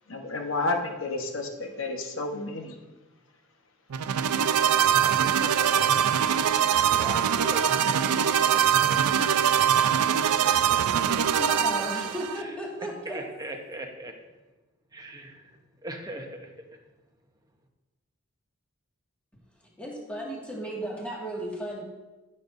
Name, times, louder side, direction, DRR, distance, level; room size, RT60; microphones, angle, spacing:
voice 1, 0.1-2.8, left 2 dB, 60° left, 4 dB, 1.0 m, -31 dB
sound 1, 3.9-12.4, right 9 dB, 85° right, 0.4 m, -23 dB
voice 2, 5.0-6.2 6.9-9.3 10.2-11.9 13.1-14.1 14.9-16.5, right 1 dB, 15° right, 3 dB, 0.9 m, -40 dB
voice 3, 11.4-13.3 19.6-21.8, right 1 dB, 5° left, -4 dB, 1.8 m, -35 dB
15.0 x 6.7 x 2.6 m, 1.2 s
head